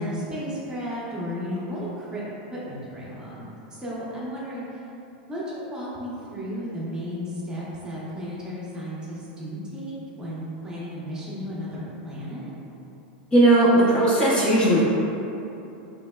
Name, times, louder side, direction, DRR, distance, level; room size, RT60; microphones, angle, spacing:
voice 1, 0.0-2.2 2.5-4.6 5.3-12.5, equal, 15° right, -7 dB, 0.8 m, -34 dB
voice 2, 13.3-14.8, right 1 dB, 20° left, -8 dB, 0.7 m, -17 dB
3.9 x 3.0 x 2.2 m, 2.9 s
supercardioid pair, 125°, 5 cm